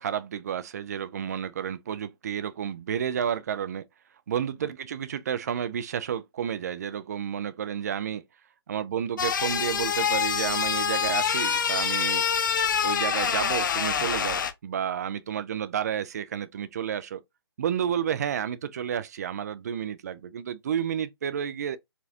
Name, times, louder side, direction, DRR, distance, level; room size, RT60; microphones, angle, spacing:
voice 1, 0.0-3.8 4.3-8.2 8.7-12.2 12.8-17.2 17.6-21.8, right 8 dB, 40° right, 0.3 m, -31 dB
sound 1, 9.2-14.5, left 7 dB, 50° left, 0.4 m, -26 dB
4.2 x 2.2 x 2.7 m
figure-of-eight pair, 145°, 14 cm